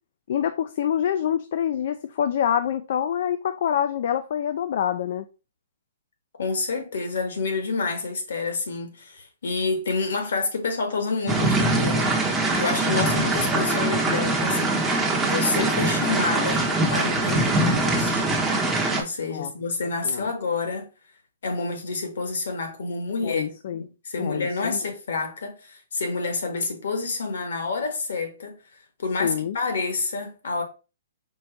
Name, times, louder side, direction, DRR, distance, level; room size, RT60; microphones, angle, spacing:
voice 1, 0.3-5.3 19.3-19.5 20.0-20.3 23.2-23.8 24.2-24.8 29.2-29.6, left 9 dB, 55° left, 0.4 m, -26 dB
voice 2, 6.4-18.3 19.0-20.9 21.4-23.5 23.8-28.6 29.0-30.6, left 4 dB, 75° left, 1.6 m, -28 dB
sound 1, 11.3-19.0, right 2 dB, 5° right, 0.8 m, -23 dB
4.5 x 2.5 x 4.5 m
hypercardioid pair, 155°, 0 cm